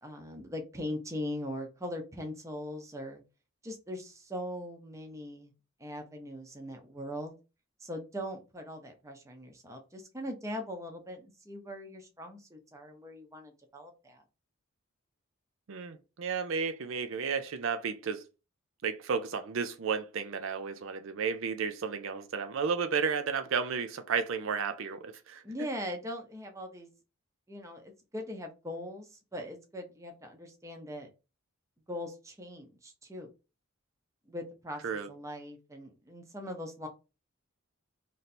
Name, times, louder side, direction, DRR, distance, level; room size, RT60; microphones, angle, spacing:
voice 1, 0.0-3.2 3.6-5.5 5.8-7.4 7.8-14.2 25.4-26.9 27.5-31.1 31.9-33.3 34.3-34.8 35.1-36.9, left 1 dB, 15° right, 0.7 m, -40 dB
voice 2, 15.7-18.2 18.8-25.4 34.8-35.1, right 6 dB, 65° right, 0.4 m, -33 dB
3.1 x 2.7 x 4.1 m
head